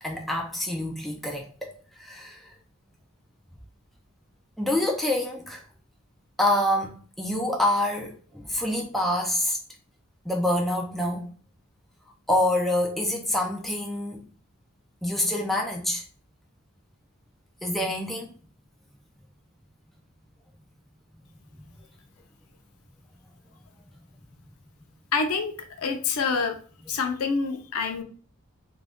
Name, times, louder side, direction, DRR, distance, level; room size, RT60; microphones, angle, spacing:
voice 1, 0.0-2.5 4.6-5.6 6.4-9.6 10.3-11.3 12.3-14.2 15.0-16.0 17.6-18.3, left 1 dB, ahead, 0.4 m, -26 dB
voice 2, 25.1-26.6 26.9-28.0, left 4 dB, 80° left, 0.5 m, -27 dB
2.5 x 2.2 x 3.4 m
head